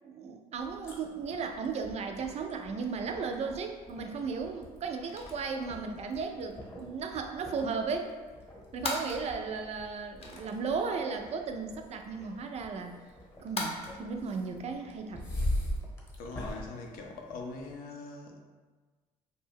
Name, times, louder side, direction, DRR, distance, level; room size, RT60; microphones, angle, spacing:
voice 1, 0.0-8.1 8.7-13.0 13.4-15.3, right 5 dB, 50° right, 5 dB, 0.4 m, -35 dB
sound 1, 0.5-17.7, left 1 dB, 20° left, 0.9 m, -42 dB
sound 2, 4.1-14.5, left 2 dB, 45° left, 0.6 m, -44 dB
voice 2, 16.2-18.4, left 3 dB, 85° left, 2 dB, 0.5 m, -42 dB
2.6 x 2.2 x 3.4 m, 1.4 s
supercardioid pair, 75°, 14 cm